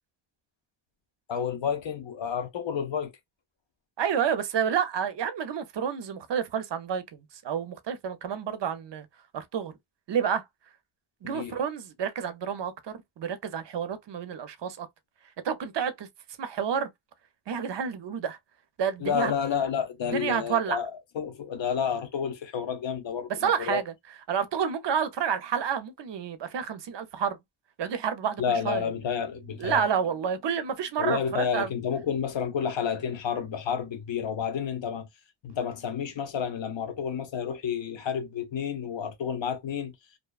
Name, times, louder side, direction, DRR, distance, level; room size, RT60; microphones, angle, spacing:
voice 1, 1.3-3.1 11.2-11.6 19.0-23.8 28.4-29.8 31.0-35.1 35.4-39.9, left 7 dB, 70° left, 0.7 m, -30 dB
voice 2, 4.0-9.1 9.3-9.8 10.1-10.4 11.2-12.7 13.2-14.9 15.4-16.1 16.4-16.9 17.5-18.4 18.8-19.3 20.1-20.8 23.4-23.9 24.3-27.4 27.8-28.9 29.6-31.7, right 7 dB, 60° right, 0.6 m, -29 dB
sound 1, 28.5-31.6, right 7 dB, 15° left, 1.2 m, -54 dB
2.7 x 2.1 x 2.3 m
wide cardioid pair, 115°, 47 cm